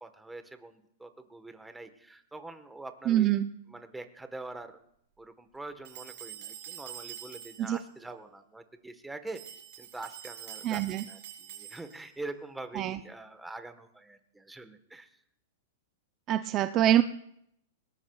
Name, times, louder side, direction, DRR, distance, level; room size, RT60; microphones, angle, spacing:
voice 1, 0.0-3.4 3.7-4.7 5.2-15.1, right 2 dB, 5° right, 8 dB, 1.3 m, -44 dB
voice 2, 3.1-3.5 7.6-7.8 10.6-11.0 12.8-13.0 16.3-17.0, right 12 dB, 35° right, 10 dB, 0.5 m, -25 dB
sound 1, 5.8-7.8 9.3-12.2, right 10 dB, 65° right, 4.8 m, -46 dB
21.0 x 18.5 x 2.4 m, 0.73 s
hypercardioid pair, 125°, 0 cm